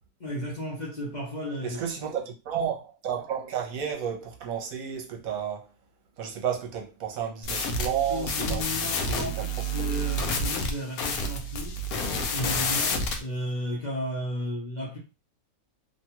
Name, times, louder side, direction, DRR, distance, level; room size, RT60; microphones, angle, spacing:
voice 1, 0.2-1.8 8.0-11.8 12.3-15.0, equal, 45° left, 0.6 m, -34 dB
voice 2, 1.6-5.7 6.2-9.5 9.8-10.1, right 8 dB, 70° right, 1.1 m, -32 dB
sound 1, 7.4-13.2, left 1 dB, 75° left, 1.1 m, -29 dB
2.9 x 2.2 x 2.8 m
omnidirectional pair, 1.6 m